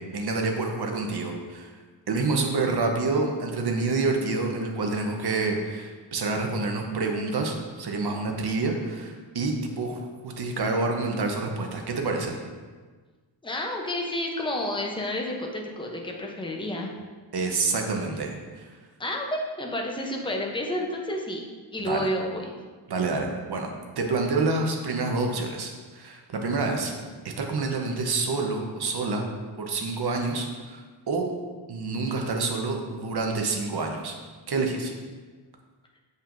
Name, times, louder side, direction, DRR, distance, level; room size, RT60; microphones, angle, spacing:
voice 1, 0.0-1.7 2.1-12.4 17.3-18.7 21.8-22.0 22.9-23.7 24.0-26.9 27.2-29.3 29.6-31.3 31.7-34.1 34.5-34.9, right 3 dB, 55° right, 2 dB, 0.9 m, -28 dB
voice 2, 13.4-16.9 19.0-21.4 21.7-22.5 26.7-26.9, left 1 dB, 10° left, 1 dB, 0.6 m, -30 dB
7.0 x 5.4 x 2.6 m, 1.4 s
wide cardioid pair, 150°, 47 cm